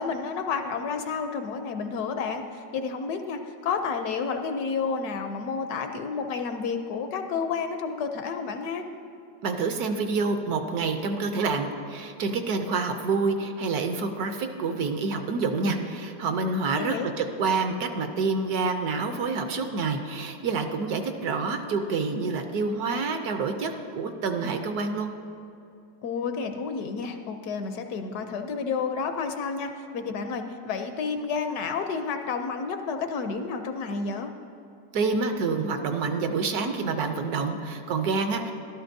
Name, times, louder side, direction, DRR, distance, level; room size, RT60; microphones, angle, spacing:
voice 1, 0.0-8.8 16.7-17.1 26.0-34.3, left 5 dB, 70° left, 7 dB, 1.0 m, -30 dB
voice 2, 9.4-25.1 34.9-38.5, right 4 dB, 70° right, 6 dB, 1.1 m, -27 dB
13.5 x 12.0 x 2.6 m, 2.5 s
omnidirectional pair, 1.9 m